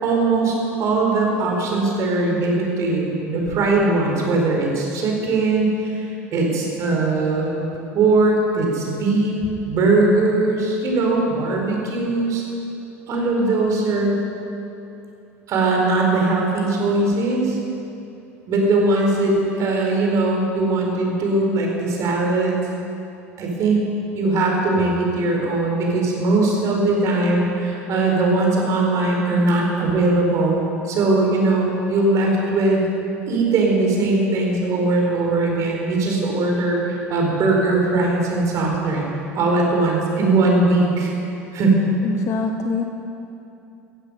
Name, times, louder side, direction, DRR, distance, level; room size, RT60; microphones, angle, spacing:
voice 1, 0.0-7.6 7.9-12.4 13.1-14.2 15.5-17.6 18.5-22.6 23.4-32.8 33.3-41.1 41.5-41.8, right 2 dB, 45° right, -1 dB, 4.7 m, -20 dB
voice 2, 42.0-42.8, left 4 dB, 40° left, 5 dB, 1.1 m, -24 dB
16.0 x 15.5 x 5.6 m, 2.7 s
figure-of-eight pair, 70°, 8 cm